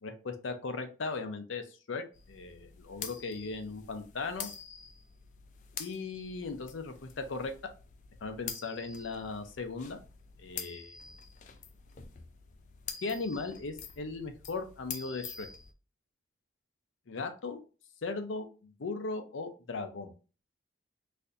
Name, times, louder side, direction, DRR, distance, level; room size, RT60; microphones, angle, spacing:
voice 1, 0.0-4.5 5.8-7.5 8.2-10.0 10.4-11.0 13.0-15.5 17.1-17.6 18.0-20.1, left 3 dB, 85° left, 7 dB, 0.6 m, -38 dB
sound 1, 2.1-15.7, left 7 dB, 40° left, 0.4 m, -46 dB
4.2 x 2.6 x 2.5 m, 0.35 s
head